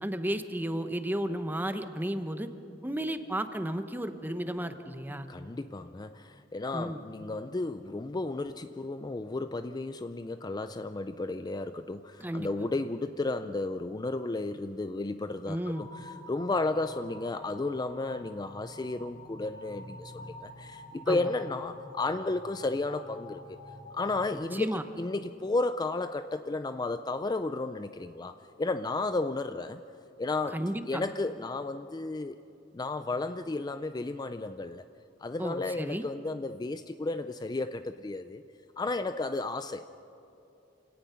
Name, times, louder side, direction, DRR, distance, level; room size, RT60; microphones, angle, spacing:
voice 1, 0.0-2.5 2.8-5.3 6.7-7.0 12.2-12.5 15.5-15.9 21.1-21.3 24.3-24.8 30.5-31.0 35.4-36.1, right 1 dB, 10° right, 9 dB, 0.9 m, -33 dB
voice 2, 5.3-23.6 23.9-29.8 30.2-30.6 30.9-32.4 32.7-34.8 35.2-38.4 38.8-39.8, left 2 dB, 20° left, 10 dB, 0.4 m, -33 dB
sound 1, 15.7-24.3, left 1 dB, 40° left, 3.6 m, -48 dB
28.0 x 17.5 x 5.7 m, 2.9 s
head